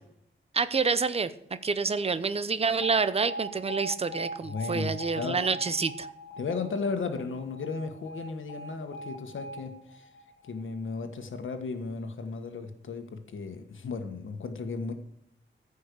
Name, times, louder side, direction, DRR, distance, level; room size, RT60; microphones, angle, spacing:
voice 1, 0.5-1.3 1.6-6.1, right 4 dB, 30° right, 14 dB, 0.6 m, -28 dB
Alarm, 2.8-10.9, right 1 dB, 70° left, 1.6 m, -41 dB
voice 2, 4.4-5.4 6.4-10.1 10.5-14.9, left 4 dB, 90° left, 6 dB, 1.4 m, -35 dB
15.0 x 5.5 x 6.8 m, 0.80 s
wide cardioid pair, 155°, 20 cm